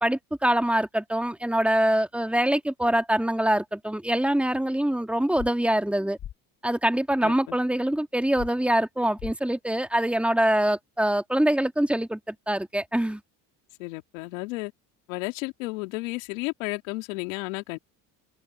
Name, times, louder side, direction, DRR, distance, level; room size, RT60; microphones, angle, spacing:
voice 1, 0.0-6.2 6.6-13.2, right 1 dB, 5° right, 1.8 m, -24 dB
sound 1, 5.4-5.5 6.2-6.3 8.4-8.5 9.2-9.3, left 11 dB, 50° left, 2.2 m, -36 dB
voice 2, 7.2-7.6 13.8-14.7 15.1-17.8, left 23 dB, 85° left, 3.1 m, -33 dB
supercardioid pair, 90°, 39 cm